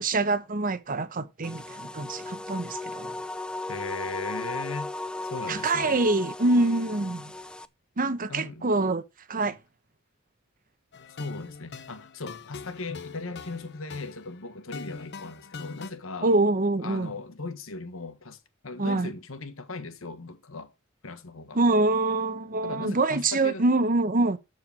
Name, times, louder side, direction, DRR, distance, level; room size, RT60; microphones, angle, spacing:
voice 1, 0.0-3.2 5.5-7.3 8.0-9.0 9.3-9.6 16.2-17.1 18.8-19.1 21.5-24.4, right 2 dB, 45° right, 1.0 m, -25 dB
sound 1, 1.4-7.6, left 2 dB, 5° left, 0.5 m, -36 dB
voice 2, 3.7-4.9 5.3-6.0 8.3-8.7 9.4-9.6 11.2-16.3 16.8-20.7 21.0-21.6 22.6-23.6, left 3 dB, 75° left, 1.5 m, -38 dB
sound 2, 10.9-15.9, left 4 dB, 55° left, 1.0 m, -42 dB
13.0 x 4.7 x 5.9 m
head